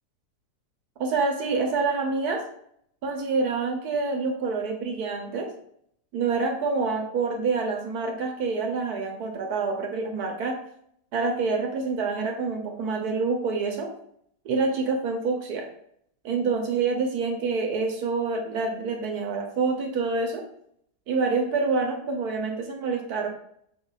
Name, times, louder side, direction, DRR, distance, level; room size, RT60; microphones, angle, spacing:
voice 1, 1.0-2.4 3.0-5.5 6.1-10.6 11.1-13.9 14.4-15.7 16.2-20.4 21.1-23.3, right 4 dB, 70° right, 2 dB, 1.3 m, -27 dB
5.3 x 3.9 x 2.4 m, 0.68 s
omnidirectional pair, 1.8 m